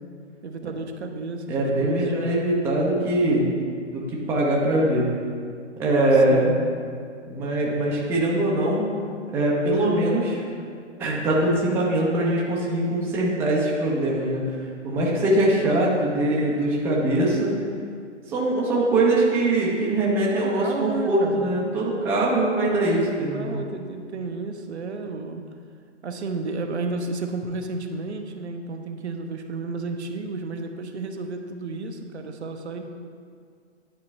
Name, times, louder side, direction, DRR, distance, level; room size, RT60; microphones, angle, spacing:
voice 1, 0.4-2.0 6.3-6.6 20.3-21.5 23.3-25.5 26.0-32.8, right 3 dB, 65° right, 5 dB, 0.8 m, -32 dB
voice 2, 1.5-3.5 3.9-5.1 5.8-6.5 7.2-8.9 9.3-10.4 11.0-14.6 14.8-17.5 18.3-23.6, right 1 dB, 5° right, -4 dB, 0.5 m, -22 dB
9.8 x 3.8 x 4.2 m, 2.1 s
figure-of-eight pair, 120°, 36 cm